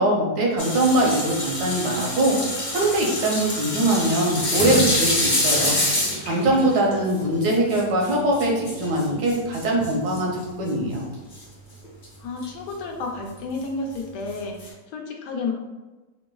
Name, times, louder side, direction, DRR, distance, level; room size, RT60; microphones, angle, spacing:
voice 1, 0.0-2.4 2.7-5.8 6.2-11.0, right 1 dB, 75° right, -1 dB, 1.3 m, -22 dB
sound 1, 0.6-10.4 11.3-11.4 11.8-12.0 12.4-12.5 13.4-13.5 14.4-14.7, left 1 dB, 45° left, 0.6 m, -26 dB
voice 2, 12.2-15.5, left 3 dB, 80° left, 1 dB, 1.2 m, -31 dB
4.9 x 2.0 x 2.2 m, 1.2 s
omnidirectional pair, 1.8 m